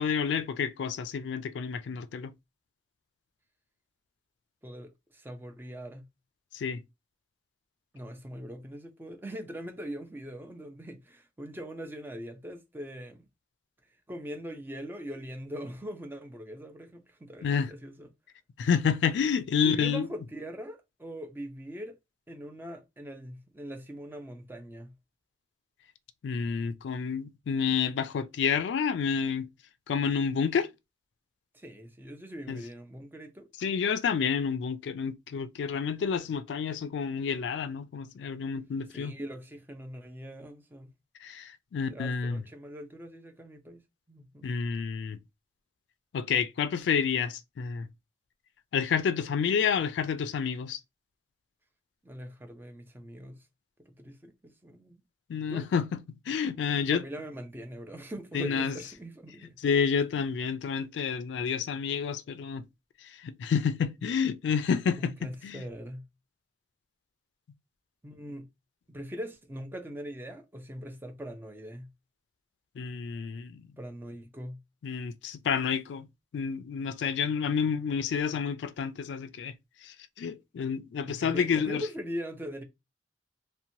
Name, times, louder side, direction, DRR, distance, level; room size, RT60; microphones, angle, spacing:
voice 1, 0.0-2.3 6.5-6.8 17.4-17.7 18.6-20.1 26.2-29.5 29.9-30.7 32.5-32.6 33.6-39.1 41.2-42.4 44.4-45.2 46.1-47.9 48.7-50.8 55.3-56.0 56.3-57.0 58.3-58.8 59.6-62.6 63.2-65.6 72.8-73.7 74.8-76.1 76.3-79.5 79.8-81.8, left 6 dB, 80° left, 0.3 m, -29 dB
voice 2, 4.6-6.1 7.9-13.3 14.1-18.1 19.6-22.0 22.3-24.9 31.5-33.5 38.9-40.9 41.9-43.8 44.1-44.5 52.0-53.4 53.9-55.0 55.4-55.7 56.8-59.6 65.0-66.1 68.0-68.5 68.9-71.9 73.8-74.6 81.0-82.6, equal, 10° right, 0.4 m, -41 dB
2.9 x 2.1 x 2.6 m
head